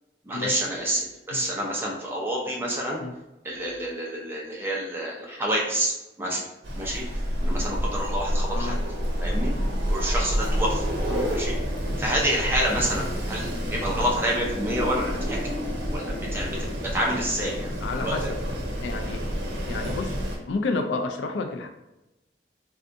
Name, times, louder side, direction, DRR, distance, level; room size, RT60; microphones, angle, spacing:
voice 1, 0.3-3.0 3.4-6.4 6.8-7.0 7.4-8.7 9.2-9.5 9.9-10.8 11.3-11.5 12.0-15.4 15.9-16.5 16.8-17.7 18.0-18.1, right 1 dB, 15° right, -3 dB, 0.6 m, -28 dB
Wind, 6.6-20.4, equal, 85° right, 0.7 m, -28 dB
voice 2, 8.5-8.8 11.1-11.3 13.7-13.9 17.8-18.4 18.8-19.2 19.7-20.2 20.5-21.7, left 3 dB, 90° left, 5 dB, 0.4 m, -30 dB
3.4 x 2.6 x 2.5 m, 0.98 s
head